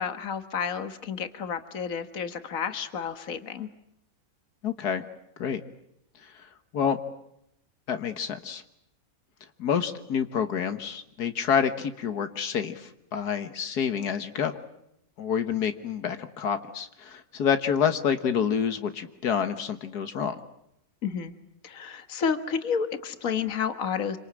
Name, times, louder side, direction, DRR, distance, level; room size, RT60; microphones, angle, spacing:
voice 1, 0.0-3.7 21.0-21.3 21.6-24.2, left 6 dB, 60° left, 9 dB, 1.9 m, -30 dB
voice 2, 4.6-5.0 5.4-5.6 6.3-6.4 6.7-7.0 7.9-8.6 9.6-14.6 15.2-20.4, left 7 dB, 85° left, 9 dB, 1.9 m, -28 dB
27.0 x 25.0 x 8.7 m, 0.80 s
omnidirectional pair, 1.6 m